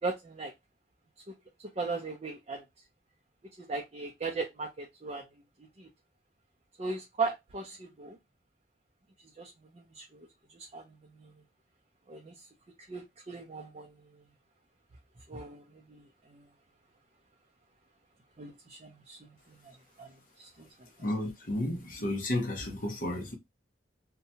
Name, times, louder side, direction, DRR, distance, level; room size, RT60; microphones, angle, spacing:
voice 1, 0.0-0.5 1.3-1.4 1.8-2.6 3.6-5.3 5.8-5.9 6.8-8.2 9.4-11.3 12.1-12.5 12.9-14.0 15.3-16.5 18.4-21.1, right 4 dB, 35° right, 0.4 m, -38 dB
voice 2, 21.0-23.3, left 1 dB, 50° left, 0.7 m, -32 dB
2.7 x 2.2 x 2.7 m
head